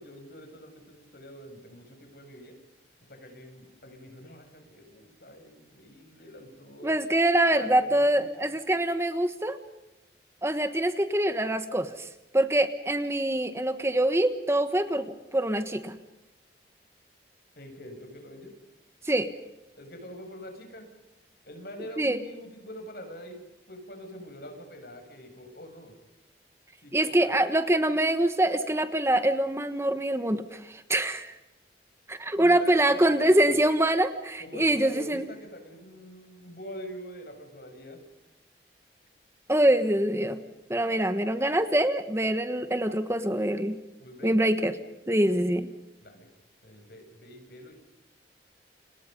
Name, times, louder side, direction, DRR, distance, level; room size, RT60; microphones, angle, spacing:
voice 1, 0.0-2.6 3.0-7.0 7.5-8.5 17.6-18.5 19.8-20.9 21.5-23.4 23.7-25.9 26.8-27.3 32.3-32.7 33.1-33.5 34.4-38.0 44.0-44.3 46.0-46.3 46.6-47.7, equal, 60° left, 5 dB, 7.5 m, -45 dB
voice 2, 6.8-9.6 10.4-12.1 12.3-16.0 19.0-19.3 22.0-22.2 26.9-31.4 32.1-35.2 39.5-40.4 40.7-43.8 44.2-44.7 45.1-45.7, right 1 dB, 15° right, 10 dB, 1.3 m, -24 dB
30.0 x 27.0 x 5.5 m, 0.97 s
head